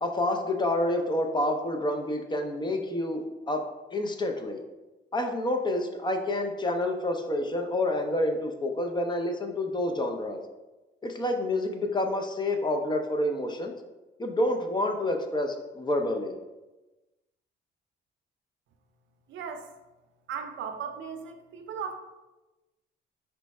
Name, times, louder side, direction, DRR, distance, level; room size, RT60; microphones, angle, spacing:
voice 1, 0.0-3.6 3.9-4.6 5.1-10.4 11.0-13.7 14.2-16.3, left 1 dB, 20° left, 4 dB, 0.5 m, -28 dB
voice 2, 19.3-19.7 20.3-22.0, right 6 dB, 70° right, 6 dB, 0.5 m, -37 dB
4.5 x 2.1 x 4.2 m, 1.1 s
cardioid pair, 90°, 20 cm